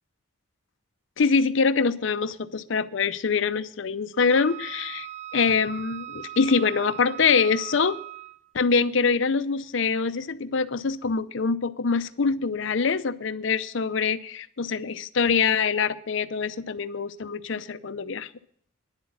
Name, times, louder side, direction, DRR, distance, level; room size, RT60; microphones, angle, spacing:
voice 1, 1.2-8.0 8.5-18.3, left 5 dB, 60° left, 13 dB, 0.6 m, -24 dB
Wind instrument woodwind instrument, 4.3-8.5, right 13 dB, 35° right, 0.5 m, -39 dB
10.5 x 8.0 x 8.3 m, 0.62 s
head